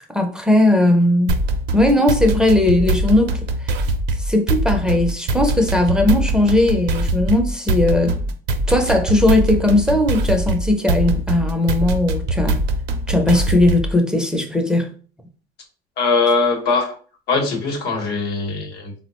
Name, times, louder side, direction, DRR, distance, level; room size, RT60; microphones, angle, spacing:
voice 1, 0.1-1.3 1.7-3.8 4.2-8.2 8.7-12.6 13.1-14.9, left 1 dB, 5° right, 0.5 m, -18 dB
sound 1, 1.3-14.0, right 2 dB, 75° right, 0.5 m, -22 dB
voice 2, 16.0-16.9 17.3-18.9, left 4 dB, 75° left, 0.9 m, -20 dB
3.6 x 2.1 x 2.9 m
cardioid pair, 110°, 17 cm